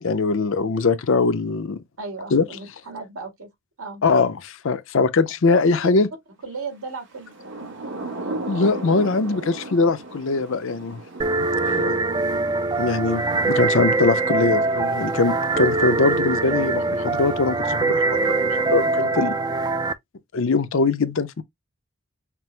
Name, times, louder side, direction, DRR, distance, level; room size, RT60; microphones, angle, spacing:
voice 1, 0.0-1.8 2.3-2.4 4.0-6.1 8.5-11.0 11.4-12.0 12.8-19.4 20.3-21.4, left 4 dB, 60° left, 0.5 m, -22 dB
voice 2, 2.0-3.5 3.8-4.0 5.5-5.9 6.4-7.4, right 3 dB, 75° right, 1.9 m, -35 dB
Thunder / Rain, 7.1-17.7, right 2 dB, 55° right, 1.3 m, -37 dB
sound 1, 11.2-19.9, right 3 dB, 20° right, 0.4 m, -23 dB
5.9 x 2.0 x 3.3 m
head